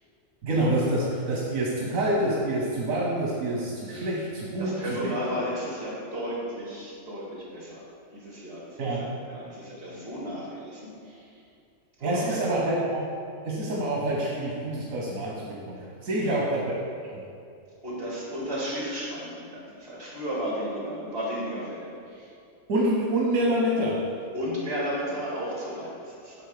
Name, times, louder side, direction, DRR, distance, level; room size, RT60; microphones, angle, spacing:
voice 1, 0.4-4.8 8.8-9.1 12.0-13.1 13.4-16.7 17.1-17.2 22.7-24.0, right 1 dB, 85° right, -4 dB, 1.4 m, -27 dB
voice 2, 4.6-7.9 8.1-11.3 12.0-12.4 16.1-16.4 17.8-22.3 24.3-26.4, equal, 50° right, -5 dB, 2.4 m, -34 dB
8.8 x 3.7 x 6.7 m, 2.4 s
omnidirectional pair, 1.4 m